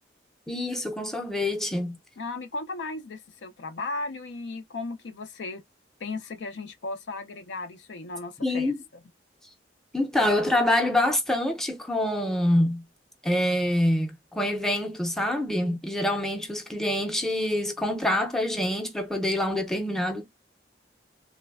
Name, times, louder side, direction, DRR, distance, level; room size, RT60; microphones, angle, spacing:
voice 1, 0.5-2.0 8.4-8.8 9.9-12.8 13.2-20.3, left 1 dB, 5° left, 0.5 m, -26 dB
voice 2, 2.2-5.6 6.0-8.7, left 3 dB, 80° left, 0.5 m, -36 dB
3.2 x 2.1 x 2.2 m
head